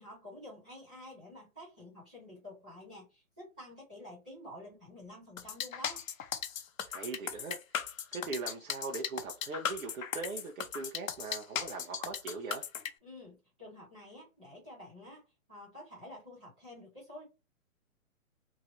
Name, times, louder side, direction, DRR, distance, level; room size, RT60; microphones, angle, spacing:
voice 1, 0.0-6.0 13.0-15.2 15.5-17.2, left 1 dB, 5° right, 0.6 m, -50 dB
sound 1, 5.4-12.9, left 8 dB, 70° left, 0.7 m, -37 dB
voice 2, 6.9-7.6 8.1-12.7, right 4 dB, 70° right, 0.9 m, -40 dB
3.0 x 2.5 x 2.9 m
hypercardioid pair, 170°, 43 cm